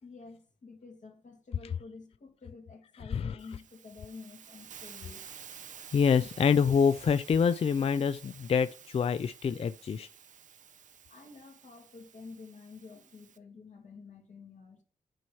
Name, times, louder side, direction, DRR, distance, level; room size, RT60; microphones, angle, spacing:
voice 1, 0.0-5.2 11.1-14.8, left 4 dB, 60° left, 2.0 m, -50 dB
Hiss, 3.4-13.4, right 8 dB, 60° right, 0.5 m, -51 dB
voice 2, 5.9-10.1, left 6 dB, 40° left, 0.3 m, -26 dB
8.9 x 3.1 x 5.7 m
cardioid pair, 65°, 15 cm